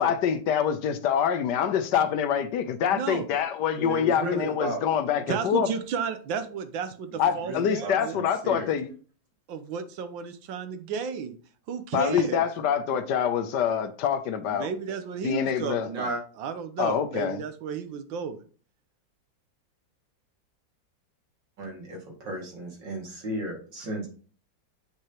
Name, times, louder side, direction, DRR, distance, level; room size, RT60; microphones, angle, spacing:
voice 1, 0.0-5.7 7.2-8.9 11.9-14.7 15.2-15.9 16.8-17.4, left 8 dB, 75° left, 1.2 m, -25 dB
voice 2, 2.9-3.3 5.3-8.2 9.5-11.3 11.7-12.4 14.4-16.1 16.4-18.4, right 6 dB, 90° right, 1.5 m, -33 dB
voice 3, 3.8-4.8 7.1-8.7 15.8-16.2 21.6-24.1, equal, 75° right, 2.9 m, -34 dB
7.8 x 5.7 x 2.9 m
omnidirectional pair, 2.0 m